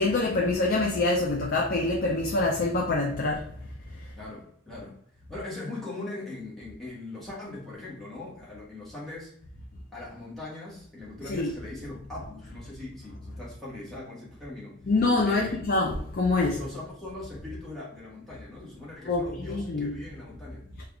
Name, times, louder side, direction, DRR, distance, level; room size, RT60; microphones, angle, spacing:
voice 1, 0.0-3.5 11.3-11.5 14.9-16.6 19.1-19.9, left 2 dB, 45° left, 0.4 m, -25 dB
voice 2, 4.2-5.0 5.3-9.3 9.9-14.8 15.3-15.6 16.5-20.6, left 2 dB, ahead, 1.1 m, -40 dB
3.4 x 2.4 x 3.4 m
head